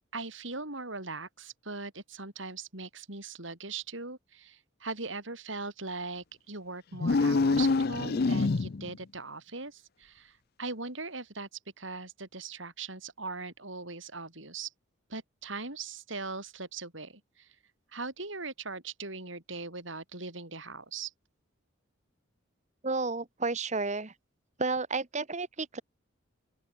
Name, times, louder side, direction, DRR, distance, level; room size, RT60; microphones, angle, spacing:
voice 1, 0.1-11.5 11.8-14.7 15.1-17.5 17.9-21.1, right 3 dB, 65° right, 8.0 m, -40 dB
sound 1, 6.9-9.0, left 3 dB, 50° left, 0.5 m, -26 dB
voice 2, 22.8-24.1 24.6-25.8, right 3 dB, 35° right, 1.4 m, -31 dB
open air
head